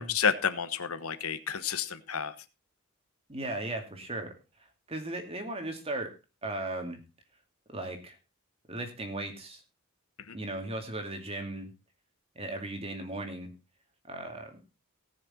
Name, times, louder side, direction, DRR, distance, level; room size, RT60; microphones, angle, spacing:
voice 1, 0.0-2.3 10.3-10.4, left 7 dB, 75° left, 11 dB, 1.3 m, -30 dB
voice 2, 3.3-4.3 4.9-6.1 6.4-7.0 7.7-8.2 8.7-9.6 10.3-11.7 12.4-13.5 14.1-14.6, right 2 dB, 25° right, 5 dB, 2.4 m, -36 dB
19.0 x 6.7 x 4.3 m, 0.29 s
head